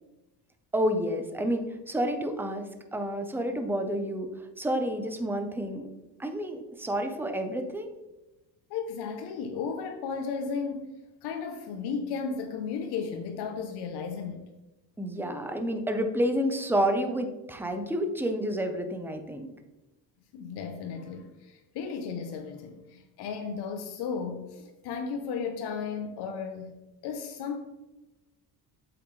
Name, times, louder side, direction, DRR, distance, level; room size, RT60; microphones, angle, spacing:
voice 1, 0.7-4.3 4.6-5.9 6.2-7.9 15.0-19.5, equal, 5° right, 6 dB, 0.8 m, -29 dB
voice 2, 8.7-10.9 11.2-14.5 20.3-26.8 27.0-27.6, left 5 dB, 70° left, 5 dB, 0.8 m, -34 dB
7.8 x 5.9 x 3.2 m, 1.0 s
cardioid pair, 115°, 41 cm